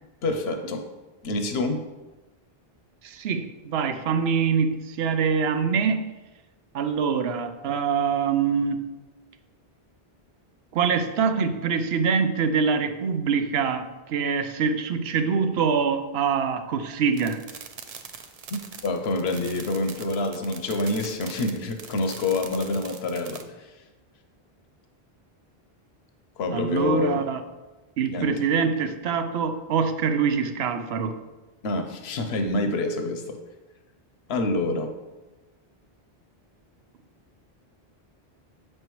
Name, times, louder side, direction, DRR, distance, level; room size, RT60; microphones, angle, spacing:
voice 1, 0.2-0.8 1.2-1.8 18.8-23.7 26.4-27.3 28.1-28.3 31.6-33.4 34.3-34.9, left 2 dB, 90° left, 6 dB, 0.9 m, -27 dB
voice 2, 3.0-6.1 6.7-8.8 10.7-17.4 26.5-27.4 28.0-31.1, right 6 dB, 90° right, 9 dB, 0.8 m, -24 dB
sound 1, 17.1-23.4, right 6 dB, 50° right, 0.5 m, -42 dB
7.9 x 5.4 x 3.0 m, 1.1 s
omnidirectional pair, 1.0 m